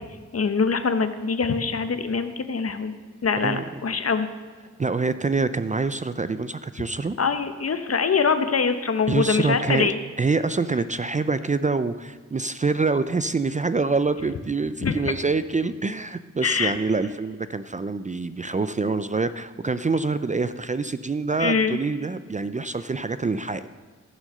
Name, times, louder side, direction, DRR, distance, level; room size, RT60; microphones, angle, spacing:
voice 1, 0.3-2.9 3.2-4.3 7.2-10.0 14.8-15.0 16.4-16.7 21.4-21.8, left 5 dB, 50° left, 9 dB, 0.9 m, -23 dB
voice 2, 4.8-7.2 9.1-9.9 10.2-23.7, right 4 dB, 25° right, 12 dB, 0.4 m, -26 dB
15.0 x 6.3 x 6.6 m, 1.4 s
wide cardioid pair, 85°, 30 cm